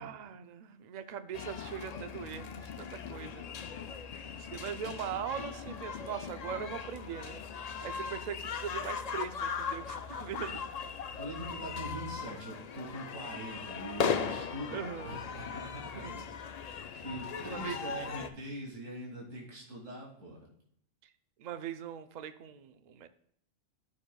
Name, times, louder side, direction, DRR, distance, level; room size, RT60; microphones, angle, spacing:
voice 1, 0.0-3.5 4.4-10.7 14.7-15.2 15.9-16.2 16.9-17.0 17.4-18.1 21.4-23.1, right 8 dB, 60° right, 10 dB, 0.4 m, -41 dB
sound 1, 1.3-18.3, left 6 dB, 90° left, 0.3 m, -38 dB
voice 2, 11.1-16.2 16.6-20.5, right 1 dB, 80° right, -3 dB, 2.4 m, -43 dB
12.5 x 6.4 x 2.3 m, 0.68 s
omnidirectional pair, 1.3 m